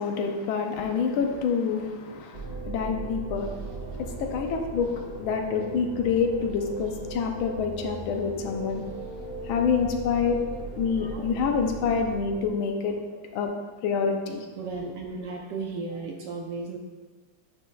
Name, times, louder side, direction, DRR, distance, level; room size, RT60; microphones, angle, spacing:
voice 1, 0.0-8.9 9.4-10.4 10.8-13.0 13.3-13.5 13.8-14.5, left 6 dB, 75° left, 4 dB, 1.4 m, -27 dB
voice 2, 2.0-2.5 3.4-4.0 8.7-9.3 9.8-10.1 10.5-10.6 11.0-11.3 13.1-13.2 14.6-16.8, right 4 dB, 70° right, 1 dB, 1.1 m, -37 dB
sound 1, 2.3-12.5, right 3 dB, 55° right, 1.8 m, -38 dB
sound 2, 3.8-12.1, equal, 90° right, 3.0 m, -45 dB
9.7 x 5.2 x 2.3 m, 1.4 s
omnidirectional pair, 2.3 m